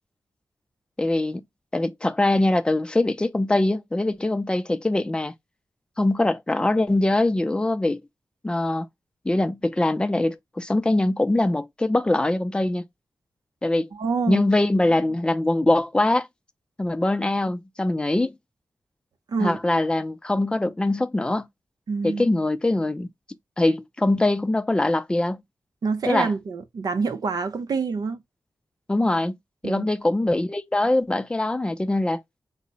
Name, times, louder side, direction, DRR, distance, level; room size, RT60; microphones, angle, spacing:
voice 1, 1.0-1.4 1.7-5.3 6.0-8.0 8.4-8.9 9.2-12.9 13.6-13.9 14.3-16.3 16.8-18.3 19.4-21.5 22.0-23.1 23.6-25.4 26.1-26.3 28.9-29.4 29.6-32.2, left 2 dB, 15° left, 0.4 m, -22 dB
voice 2, 13.9-14.4 19.3-19.6 21.9-22.3 25.8-28.2 29.6-29.9, right 4 dB, 70° right, 0.6 m, -26 dB
4.9 x 2.1 x 4.0 m
wide cardioid pair, 110°, 7 cm